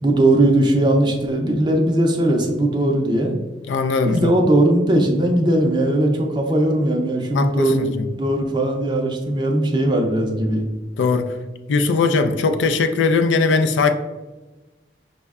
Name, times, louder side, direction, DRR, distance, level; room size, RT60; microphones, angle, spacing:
voice 1, 0.0-3.3 4.0-7.8 8.2-10.6, right 1 dB, 25° right, 2 dB, 0.4 m, -19 dB
voice 2, 3.7-4.3 7.3-8.1 11.0-11.4 11.7-13.9, left 4 dB, 85° left, 7 dB, 0.3 m, -19 dB
5.4 x 2.1 x 3.4 m, 1.2 s
head